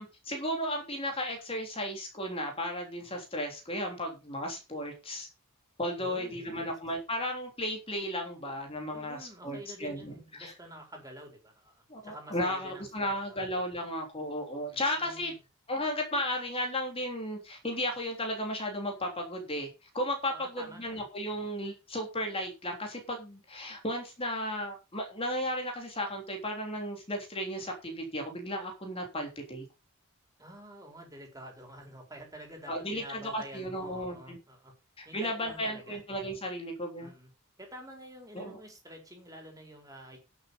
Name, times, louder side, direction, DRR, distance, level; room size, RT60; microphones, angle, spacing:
voice 1, 0.0-5.3 5.8-10.5 11.9-15.3 15.7-29.7 32.7-34.4 35.0-37.1 38.3-38.6, equal, 25° left, 2 dB, 3.4 m, -34 dB
voice 2, 6.0-6.8 8.9-13.4 14.7-15.3 20.3-21.0 30.4-34.7 35.0-36.0 37.0-37.3 37.6-40.2, right 1 dB, 15° right, 3 dB, 4.5 m, -48 dB
11.0 x 7.5 x 5.5 m, 0.28 s
head